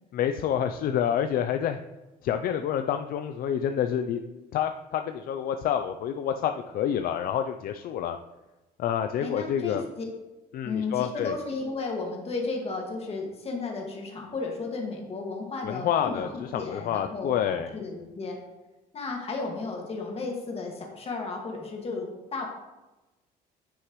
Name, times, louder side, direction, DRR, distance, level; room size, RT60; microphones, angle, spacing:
voice 1, 0.1-1.8 2.2-8.2 8.8-9.8 10.5-11.4 15.6-17.7, left 9 dB, 60° left, 7 dB, 0.5 m, -28 dB
voice 2, 9.2-10.1 10.6-18.4 18.9-22.5, left 3 dB, 35° left, 0 dB, 1.9 m, -34 dB
9.7 x 6.3 x 3.1 m, 1.1 s
cardioid pair, 110°, 17 cm